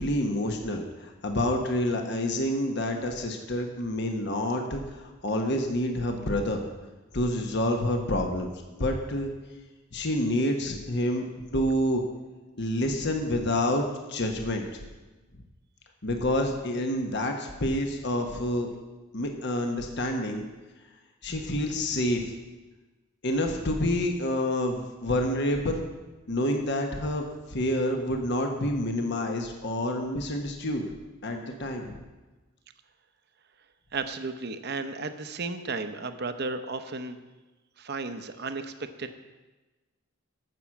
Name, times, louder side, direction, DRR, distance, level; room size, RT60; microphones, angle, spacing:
voice 1, 0.0-6.6 7.1-8.5 8.8-9.3 9.9-11.2 11.5-12.0 12.6-14.8 16.0-18.7 19.1-20.4 21.2-22.3 23.2-25.9 26.3-30.9 31.2-32.0, left 1 dB, 55° left, 3 dB, 1.2 m, -28 dB
voice 2, 33.9-37.2 37.8-39.1, right 3 dB, 50° right, 9 dB, 0.8 m, -34 dB
14.0 x 6.3 x 7.2 m, 1.2 s
head